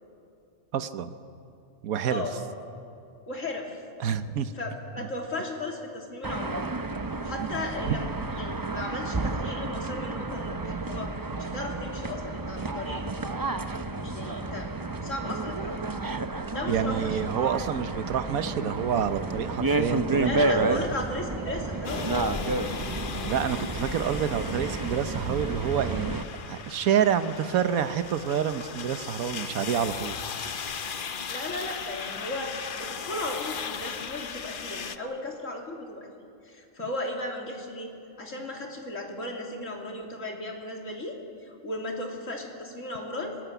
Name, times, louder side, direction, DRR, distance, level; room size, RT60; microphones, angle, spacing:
voice 1, 0.7-1.1 1.8-2.3 4.0-4.5 7.4-7.5 7.9-8.0 16.7-20.9 23.2-30.1, right 8 dB, 80° right, 11 dB, 1.4 m, -28 dB
voice 2, 2.1-2.4 3.3-3.8 4.5-6.7 7.2-13.0 14.0-14.7 15.0-16.0 16.5-17.2 20.2-22.1 31.3-36.1 36.4-37.9 38.2-43.4, left 2 dB, 65° left, 1 dB, 3.5 m, -36 dB
sound 1, 6.2-26.2, right 2 dB, 25° right, 0.5 m, -31 dB
sound 2, 21.8-35.0, left 6 dB, 45° left, 0.9 m, -37 dB
26.5 x 20.5 x 8.1 m, 2.6 s
omnidirectional pair, 1.5 m